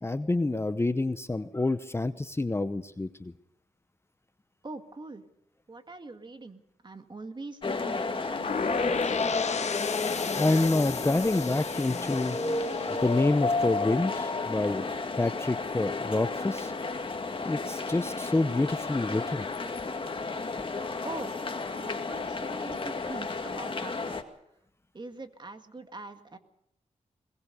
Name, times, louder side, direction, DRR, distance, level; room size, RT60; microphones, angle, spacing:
voice 1, 0.0-3.3 10.1-12.4 13.0-14.8 15.2-16.7 17.4-19.5, left 2 dB, 20° left, 12 dB, 0.8 m, -27 dB
voice 2, 4.6-5.2 5.7-9.2 21.0-21.3 21.7-24.2 24.9-26.4, right 3 dB, 35° right, 8 dB, 1.9 m, -43 dB
sound 1, 7.6-24.2, left 3 dB, 40° left, 1.9 m, -32 dB
sound 2, 8.4-14.3, left 6 dB, 60° left, 1.1 m, -36 dB
sound 3, 12.1-15.9 16.2-16.3, right 3 dB, 60° right, 1.6 m, -49 dB
21.5 x 20.0 x 6.8 m, 0.80 s
wide cardioid pair, 80°, 13 cm